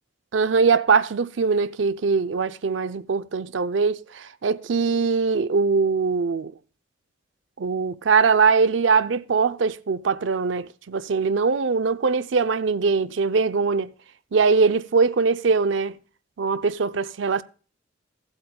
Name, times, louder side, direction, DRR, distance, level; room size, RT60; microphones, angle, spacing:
voice 1, 0.3-6.5 7.6-13.9 14.3-16.0 16.4-17.4, right 5 dB, 80° right, 0.5 m, -22 dB
17.0 x 8.1 x 2.2 m
head